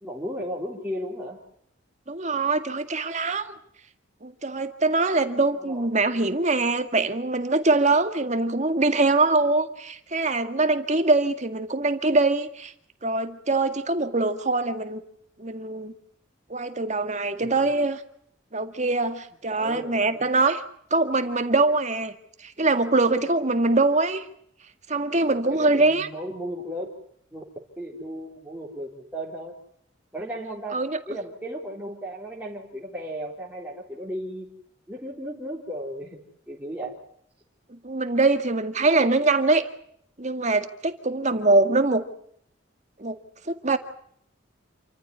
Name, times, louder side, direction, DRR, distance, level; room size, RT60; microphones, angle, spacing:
voice 1, 0.0-1.4 5.6-5.9 19.6-20.2 25.3-26.9 27.3-27.4 27.8-29.5 30.1-34.5 34.9-36.2 36.5-37.0, equal, 10° right, -4 dB, 4.0 m, -35 dB
voice 2, 2.1-3.5 4.2-12.7 13.0-15.0 15.4-15.9 16.5-18.0 18.5-20.6 20.9-22.1 22.4-24.3 24.9-26.1 30.7-31.0 37.7-39.7 40.2-42.0 43.0-43.2 43.5-43.8, right 3 dB, 35° right, 8 dB, 2.0 m, -23 dB
28.0 x 14.5 x 9.6 m, 0.68 s
head